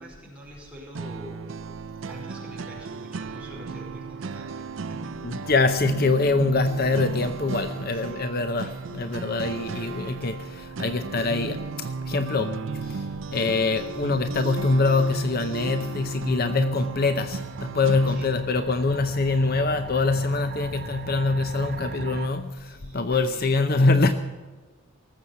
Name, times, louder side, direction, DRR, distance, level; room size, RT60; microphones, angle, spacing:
voice 1, 0.0-1.5 2.1-5.5 7.9-8.7 18.1-18.3 22.6-23.5, right 1 dB, 5° right, 4.7 m, -45 dB
sound 1, 0.9-18.4, right 4 dB, 65° right, 0.5 m, -35 dB
voice 2, 5.2-24.1, left 3 dB, 45° left, 0.7 m, -24 dB
sound 2, 8.2-22.3, right 3 dB, 45° right, 0.9 m, -43 dB
19.0 x 7.9 x 8.6 m
head